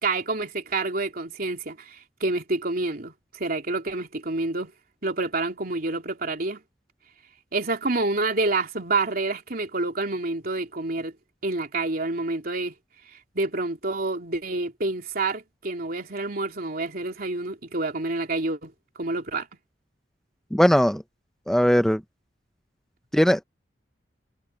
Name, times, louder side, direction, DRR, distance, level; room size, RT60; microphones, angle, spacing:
voice 1, 0.0-4.7 5.0-6.6 7.5-11.1 11.4-12.7 13.3-19.5, right 3 dB, 55° right, 3.2 m, -28 dB
voice 2, 20.5-21.0 21.5-22.0 23.1-23.4, equal, 5° left, 0.7 m, -19 dB
head